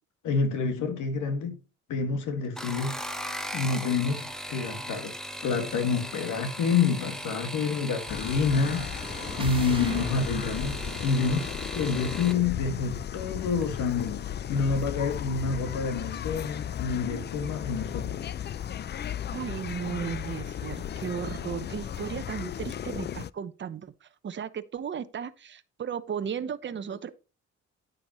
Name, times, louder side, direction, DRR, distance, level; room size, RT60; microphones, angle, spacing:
voice 1, 0.2-1.6 1.9-3.0 3.5-5.1 5.4-9.1 9.4-18.2, left 5 dB, 80° left, 2.0 m, -28 dB
sound 1, 2.4-12.4 13.6-14.1 14.5-14.9 15.2-15.3, equal, ahead, 1.0 m, -38 dB
sound 2, 8.1-23.3, left 10 dB, 35° left, 0.4 m, -36 dB
sound 3, 8.4-12.5, right 3 dB, 15° right, 1.5 m, -40 dB
voice 2, 19.3-27.1, right 7 dB, 40° right, 0.8 m, -35 dB
9.5 x 8.7 x 3.1 m
cardioid pair, 90°, 30 cm